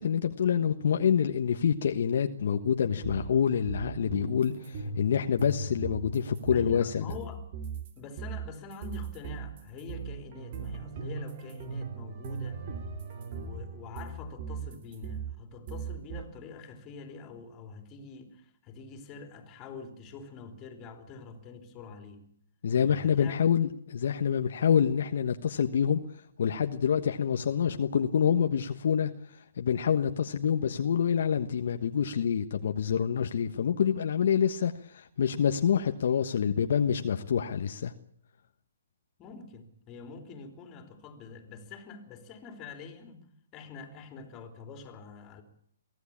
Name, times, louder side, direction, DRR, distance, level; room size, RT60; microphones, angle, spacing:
voice 1, 0.0-7.0 22.6-26.0 26.4-29.1 29.6-37.9, left 7 dB, 60° left, 6 dB, 1.3 m, -27 dB
sound 1, 3.0-7.9 8.2-15.3 15.7-16.2, right 5 dB, 40° right, 3.1 m, -38 dB
voice 2, 6.5-7.4 8.0-12.6 13.2-22.3 22.8-23.4 39.2-43.3 43.5-45.4, left 5 dB, 20° left, 6 dB, 3.5 m, -45 dB
23.5 x 15.5 x 8.7 m, 0.67 s
hypercardioid pair, 155°, 0 cm